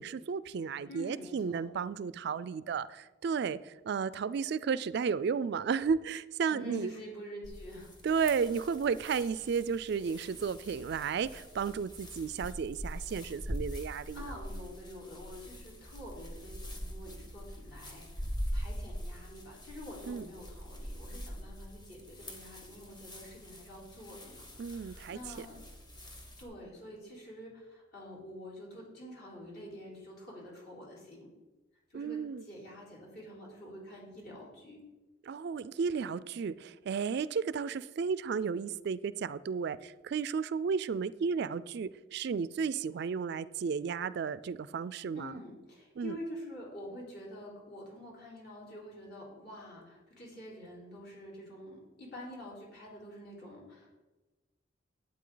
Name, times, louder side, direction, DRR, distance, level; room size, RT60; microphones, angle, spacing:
voice 1, 0.0-6.9 8.0-14.4 20.1-20.3 24.6-25.5 31.9-32.5 35.2-45.3 46.0-46.2, right 6 dB, 55° right, 0.3 m, -33 dB
voice 2, 0.9-1.6 6.5-7.9 14.1-25.6 26.4-31.3 31.9-32.2 32.4-34.8 45.1-53.9, left 1 dB, 55° left, 4.0 m, -47 dB
sound 1, 7.4-26.4, equal, 20° left, 1.4 m, -43 dB
11.5 x 8.8 x 3.9 m
head